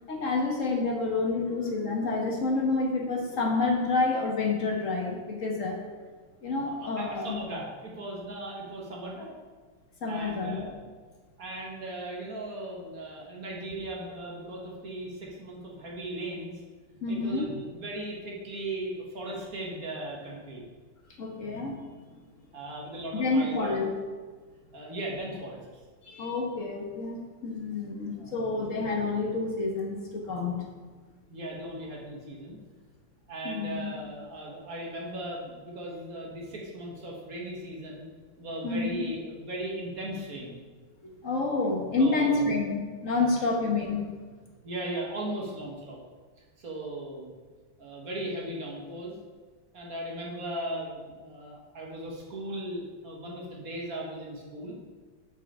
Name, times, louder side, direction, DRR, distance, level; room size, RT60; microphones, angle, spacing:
voice 1, 0.1-5.8 6.4-7.4 10.0-10.7 17.0-17.5 21.2-21.8 23.1-23.9 26.0-30.6 33.4-33.9 38.6-39.1 41.0-44.2, left 3 dB, 45° left, 0 dB, 1.3 m, -28 dB
voice 2, 6.6-9.3 10.1-10.9 11.4-16.5 17.1-20.6 22.5-23.7 24.7-25.6 28.2-28.5 31.3-32.6 33.3-38.1 38.4-40.6 42.0-42.5 43.2-43.3 44.6-46.0 46.6-47.3 47.8-49.2 49.7-54.8, right 1 dB, 45° right, -3 dB, 1.8 m, -37 dB
6.7 x 6.1 x 5.5 m, 1.4 s
omnidirectional pair, 2.2 m